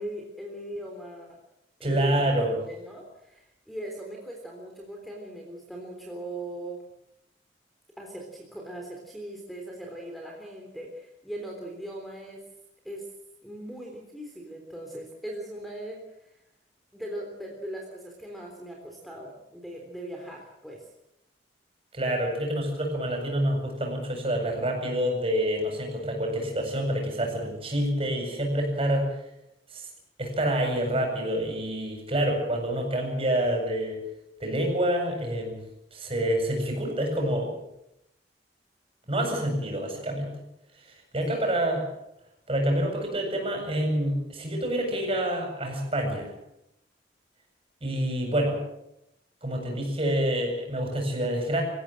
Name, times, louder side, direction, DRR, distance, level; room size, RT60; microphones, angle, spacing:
voice 1, 0.0-1.4 1.8-2.3 2.7-6.8 8.0-12.4 12.8-13.1 13.4-16.3 16.9-20.9 41.3-41.4, right 1 dB, ahead, 0 dB, 3.6 m, -39 dB
voice 2, 1.8-2.6 21.9-29.1 29.7-29.8 30.2-34.0 34.4-35.6 35.9-37.5 39.1-40.3 41.1-41.8 42.5-46.3 47.8-48.6 49.4-51.6, right 1 dB, 30° right, 2 dB, 7.8 m, -27 dB
26.0 x 16.5 x 7.7 m, 0.83 s
head